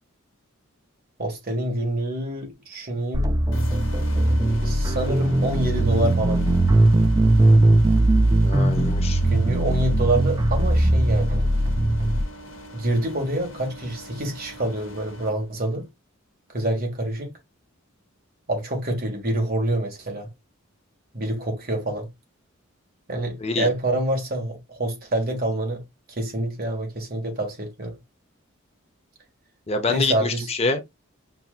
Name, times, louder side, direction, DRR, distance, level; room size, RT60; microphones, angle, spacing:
voice 1, 1.2-3.3 4.6-6.5 9.3-11.5 12.7-15.9 16.5-17.3 18.5-20.3 21.1-22.1 23.1-25.8 26.1-28.0 29.9-30.5, right 1 dB, 45° right, 1.5 m, -26 dB
sound 1, 3.1-12.2, right 1 dB, 15° right, 0.3 m, -19 dB
sound 2, 3.5-15.3, equal, 65° left, 1.3 m, -42 dB
voice 2, 8.4-9.2 23.4-23.7 29.7-30.8, left 3 dB, 30° left, 0.6 m, -26 dB
5.7 x 2.7 x 2.4 m
head